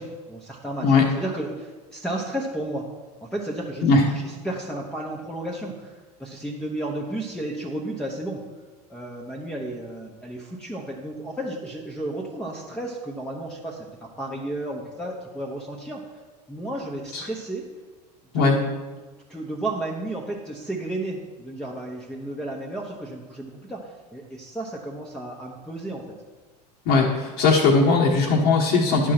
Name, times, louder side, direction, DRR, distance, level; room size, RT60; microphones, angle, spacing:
voice 1, 0.0-2.9 3.2-8.4 8.9-16.0 16.5-17.7 18.3-18.7 19.3-26.0, right 1 dB, 5° left, -2 dB, 1.0 m, -33 dB
voice 2, 26.9-29.1, left 4 dB, 60° left, -2 dB, 1.2 m, -19 dB
11.0 x 3.7 x 5.9 m, 1.3 s
hypercardioid pair, 80°, 20 cm